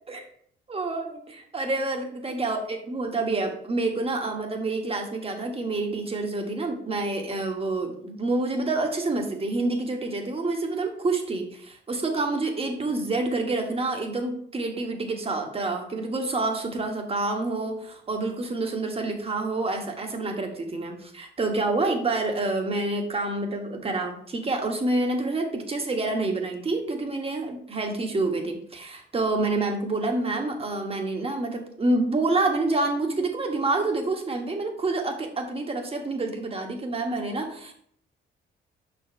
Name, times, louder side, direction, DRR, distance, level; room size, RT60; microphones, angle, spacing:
voice 1, 0.7-37.7, right 2 dB, 30° right, 3 dB, 1.4 m, -28 dB
6.0 x 4.3 x 4.4 m, 0.65 s
cardioid pair, 90°, 20 cm